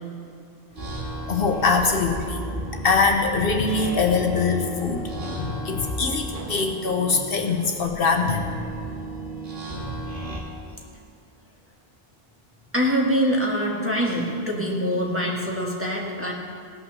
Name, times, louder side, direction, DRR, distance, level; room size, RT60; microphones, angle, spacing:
sound 1, 0.8-10.4, right 1 dB, 70° right, 2.0 m, -34 dB
voice 1, 1.3-2.4 2.8-8.5, left 4 dB, 65° left, 4 dB, 1.1 m, -23 dB
voice 2, 12.7-16.3, equal, 10° right, -3 dB, 1.7 m, -24 dB
17.0 x 5.8 x 6.8 m, 2.5 s
omnidirectional pair, 1.1 m